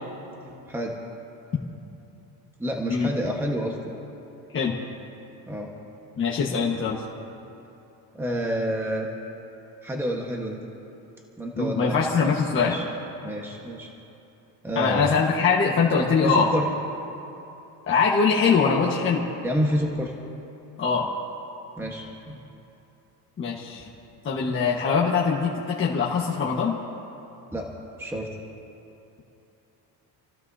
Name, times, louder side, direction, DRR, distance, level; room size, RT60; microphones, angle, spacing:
voice 1, 0.5-0.9 2.6-3.9 5.5-5.7 8.1-9.1 9.8-10.6 11.4-12.8 13.2-13.9 14.6-15.1 16.2-16.7 19.4-20.1 21.8-22.4 24.5-24.6 27.5-27.7 28.0-28.3, equal, 5° right, -1 dB, 1.3 m, -29 dB
voice 2, 6.2-7.0 11.6-12.7 14.7-16.5 17.9-19.2 20.8-21.1 23.4-23.9 24.2-26.8, left 5 dB, 30° left, -3 dB, 1.5 m, -22 dB
29.0 x 15.5 x 2.8 m, 2.9 s
cardioid pair, 145°, 38 cm